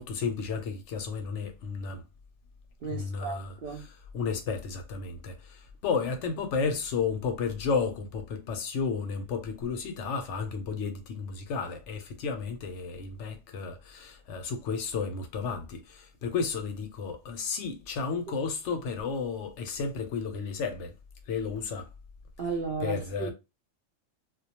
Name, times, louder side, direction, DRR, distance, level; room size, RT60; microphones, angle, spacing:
voice 1, 0.0-2.0 2.8-3.8 4.1-20.9 21.3-21.9 22.8-23.3, left 5 dB, 70° left, 0.9 m, -32 dB
voice 2, 2.8-3.8 22.4-23.3, right 4 dB, 60° right, 0.6 m, -34 dB
2.3 x 2.1 x 2.8 m
omnidirectional pair, 1.3 m